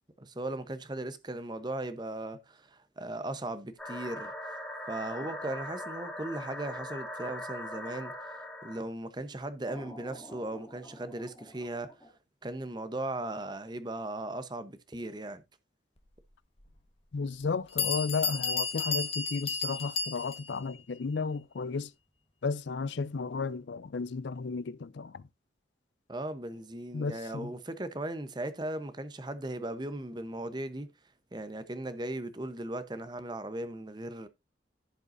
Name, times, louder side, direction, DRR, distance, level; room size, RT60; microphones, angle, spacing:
voice 1, 0.2-4.3 4.9-11.9 12.4-15.4 26.1-30.9 31.3-34.3, right 1 dB, 25° right, 0.8 m, -37 dB
sound 1, 3.8-8.8 9.7-12.1, left 1 dB, 5° left, 2.6 m, -42 dB
Bell, 16.6-16.7 17.4-17.5 17.8-20.6, left 5 dB, 30° left, 1.2 m, -32 dB
voice 2, 17.1-21.9 22.4-25.2 26.9-27.5, left 4 dB, 75° left, 0.5 m, -33 dB
15.0 x 5.4 x 2.6 m
head